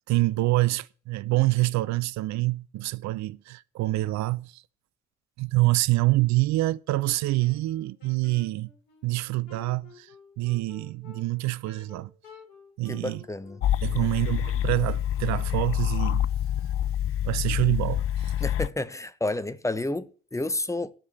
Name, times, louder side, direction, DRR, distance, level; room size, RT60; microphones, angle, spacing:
voice 1, 0.1-4.6 5.4-8.7 9.0-10.1 10.4-12.1 12.8-13.2 13.8-16.3 17.2-18.3, right 19 dB, 55° right, 0.5 m, -26 dB
Wind instrument woodwind instrument, 7.0-16.0, left 5 dB, 75° left, 3.2 m, -53 dB
voice 2, 12.9-14.1 18.4-20.9, left 2 dB, 10° left, 0.9 m, -31 dB
sound 1, 13.6-18.7, left 11 dB, 40° left, 0.4 m, -27 dB
12.0 x 4.9 x 8.2 m
figure-of-eight pair, 45°, 34 cm